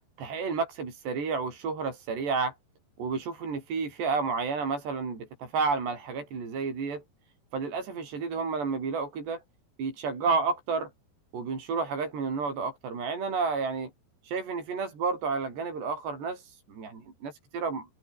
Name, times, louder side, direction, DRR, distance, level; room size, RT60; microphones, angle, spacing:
voice 1, 0.2-2.5 3.0-7.0 7.5-9.4 9.8-10.9 11.3-13.9 14.2-17.9, right 4 dB, 70° right, 8.6 m, -31 dB
omnidirectional pair, 5.1 m